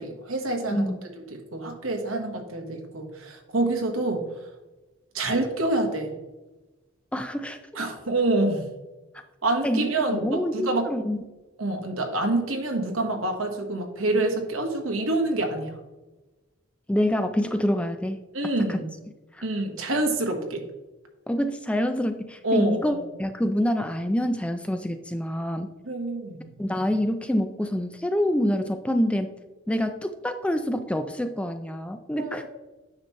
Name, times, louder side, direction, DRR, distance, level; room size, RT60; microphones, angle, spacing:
voice 1, 0.0-0.9 1.2-4.2 5.1-6.1 7.7-8.7 9.4-10.8 11.6-15.8 18.3-18.9 19.4-20.6 22.4-23.0 25.8-26.6 32.2-32.5, right 2 dB, 75° right, 3 dB, 1.4 m, -27 dB
voice 2, 0.7-1.1 7.1-7.6 9.6-11.2 16.9-18.2 18.6-18.8 19.3-19.4 21.3-25.7 26.6-29.3 29.7-32.5, equal, 5° left, 8 dB, 0.4 m, -26 dB
9.3 x 5.8 x 3.1 m, 1.1 s
head